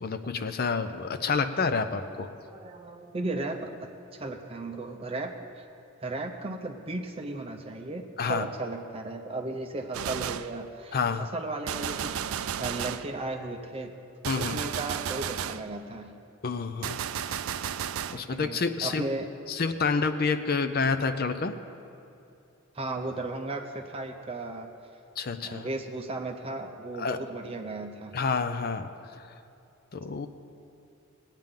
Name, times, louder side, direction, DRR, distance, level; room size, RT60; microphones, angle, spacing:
voice 1, 0.0-2.3 8.2-8.5 10.9-11.3 14.3-14.6 16.4-17.0 17.3-17.4 18.1-19.1 19.5-21.5 25.2-25.7 27.0-27.2 28.1-28.9 29.9-30.3, left 5 dB, 45° left, 10 dB, 0.5 m, -28 dB
voice 2, 2.5-3.7 4.1-5.7 6.0-12.2 12.6-13.9 14.3-16.1 18.1-19.3 22.7-24.7 25.4-28.2, right 2 dB, 25° right, 3 dB, 0.5 m, -35 dB
Gunshot gunfire, 9.9-10.6 11.7-13.1 14.2-15.7 16.8-18.2, right 9 dB, 75° right, 0.4 m, -33 dB
19.5 x 8.9 x 3.7 m, 2.8 s
head